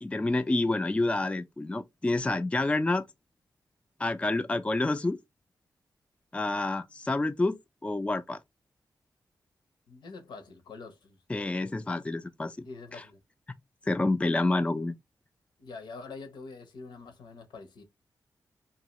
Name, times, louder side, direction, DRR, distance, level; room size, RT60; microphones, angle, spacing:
voice 1, 0.0-3.0 4.0-5.2 6.3-7.6 7.8-8.4 11.3-12.7 13.0-13.1 13.9-15.0, left 2 dB, 15° left, 0.3 m, -28 dB
voice 2, 9.9-11.2 12.6-13.2 15.6-17.8, left 4 dB, 85° left, 0.7 m, -45 dB
2.7 x 2.4 x 2.9 m
cardioid pair, 70°, 8 cm